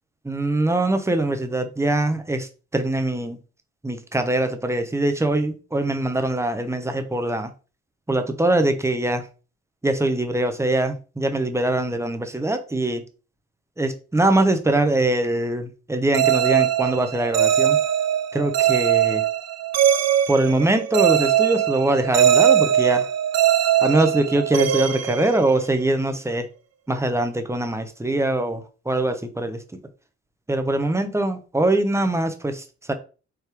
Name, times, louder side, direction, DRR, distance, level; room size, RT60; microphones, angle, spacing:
voice 1, 0.2-3.4 3.8-7.5 8.1-9.3 9.8-13.0 13.8-17.8 18.3-19.2 20.3-23.1 23.8-26.5 26.9-29.8 30.5-32.9, right 2 dB, 10° right, 6 dB, 0.8 m, -23 dB
sound 1, 16.1-26.0, right 10 dB, 60° right, 0.6 m, -21 dB
4.6 x 3.2 x 3.4 m, 0.34 s
cardioid pair, 90°, 30 cm